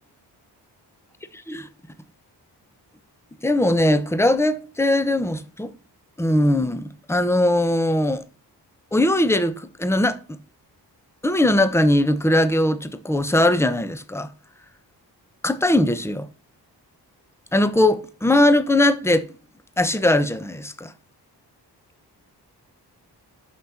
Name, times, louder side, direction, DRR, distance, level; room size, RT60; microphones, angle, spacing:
voice 1, 3.4-5.7 6.2-8.2 8.9-10.4 11.2-14.3 15.4-16.3 17.5-19.2 19.8-20.9, left 1 dB, 5° left, 0.9 m, -20 dB
6.0 x 5.8 x 5.8 m
cardioid pair, 55°, 42 cm